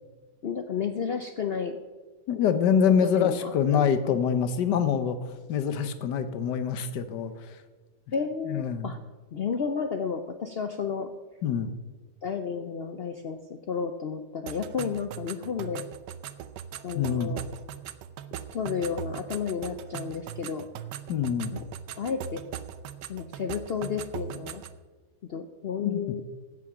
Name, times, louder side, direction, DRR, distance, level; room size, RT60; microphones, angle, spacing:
voice 1, 0.4-1.8 3.0-3.8 4.1-4.2 8.1-9.0 9.3-11.1 12.2-13.4 13.7-15.8 16.8-17.4 18.5-20.7 21.5-21.6 22.0-22.4 23.1-24.6 25.3-26.2, left 6 dB, 65° left, 7 dB, 0.6 m, -32 dB
voice 2, 2.3-5.2 5.5-7.6 8.5-8.9 11.4-11.7 16.9-17.3 21.1-21.6 25.8-26.0, left 7 dB, 90° left, 11 dB, 1.5 m, -25 dB
sound 1, 14.5-24.8, right 9 dB, 90° right, 1.3 m, -40 dB
15.5 x 6.3 x 6.0 m, 1.3 s
omnidirectional pair, 1.8 m